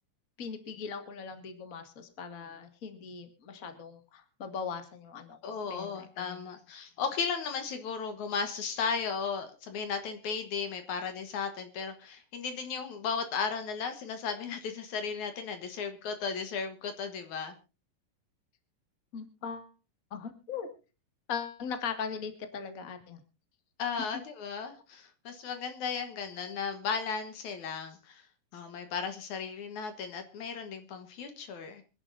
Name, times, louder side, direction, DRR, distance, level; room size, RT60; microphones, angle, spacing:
voice 1, 0.4-6.4 19.1-19.7 20.1-20.7 21.3-23.2, left 6 dB, 30° left, 7 dB, 2.0 m, -39 dB
voice 2, 5.4-17.5 23.8-28.2 28.5-31.8, left 5 dB, 65° left, 8 dB, 2.6 m, -35 dB
26.0 x 11.0 x 2.6 m, 0.31 s
omnidirectional pair, 3.8 m